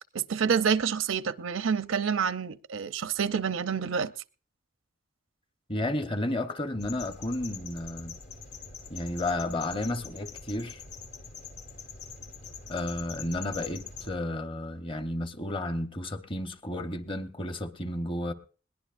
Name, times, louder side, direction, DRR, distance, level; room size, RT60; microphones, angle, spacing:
voice 1, 0.1-4.1, right 6 dB, 85° right, 0.6 m, -28 dB
voice 2, 5.7-8.2 8.9-10.8 12.7-18.3, left 1 dB, 25° left, 0.9 m, -32 dB
sound 1, 6.8-14.1, left 5 dB, 60° left, 1.3 m, -44 dB
21.0 x 18.5 x 2.5 m
head